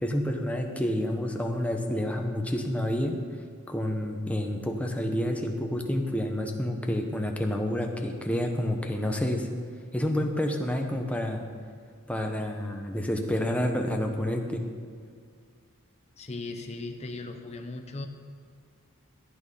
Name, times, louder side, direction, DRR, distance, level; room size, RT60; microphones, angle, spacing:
voice 1, 0.0-3.2 3.7-9.5 9.9-11.4 12.1-14.6, left 1 dB, 5° left, 2 dB, 1.0 m, -29 dB
voice 2, 16.2-18.1, left 2 dB, 30° left, 4 dB, 0.7 m, -37 dB
14.5 x 9.0 x 5.6 m, 2.2 s
head